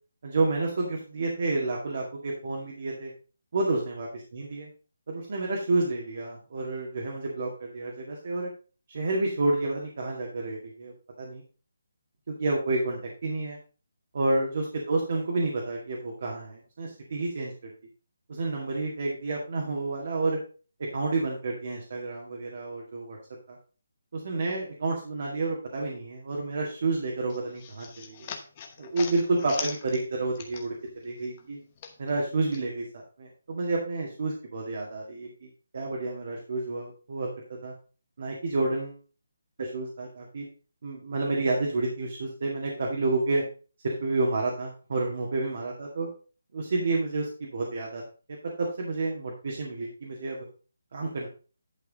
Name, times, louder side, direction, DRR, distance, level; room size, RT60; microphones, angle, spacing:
voice 1, 0.2-3.1 3.5-4.7 5.1-8.5 8.9-11.4 12.3-13.6 14.1-17.5 18.3-20.4 20.8-23.2 23.5-23.6 24.1-28.3 28.8-30.7 31.0-31.6 32.0-32.8 33.2-37.3 37.6-37.7 38.2-39.0 39.6-40.4 40.8-43.4 43.8-46.1 46.5-48.0 48.6-50.4 50.9-51.3, right 2 dB, 45° right, -1 dB, 2.1 m, -30 dB
sound 1, 27.3-30.9 31.2-32.6, left 7 dB, 25° left, 1.0 m, -41 dB
11.0 x 4.8 x 4.2 m, 0.37 s
hypercardioid pair, 170°, 0 cm